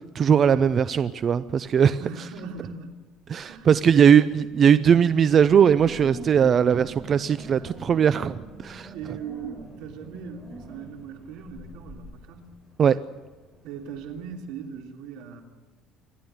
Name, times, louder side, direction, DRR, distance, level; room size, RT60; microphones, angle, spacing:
voice 1, 0.1-2.0 3.3-4.2 4.6-8.9 12.8-13.0, right 8 dB, 35° right, 0.5 m, -19 dB
Wind, 1.5-1.9 2.3-2.8 3.2-14.6, right 1 dB, 10° right, 6.5 m, -45 dB
voice 2, 2.0-3.0 3.4-4.3 8.9-12.6 13.6-15.4, right 7 dB, 80° right, 3.3 m, -38 dB
27.5 x 11.5 x 9.4 m
cardioid pair, 150°, 0 cm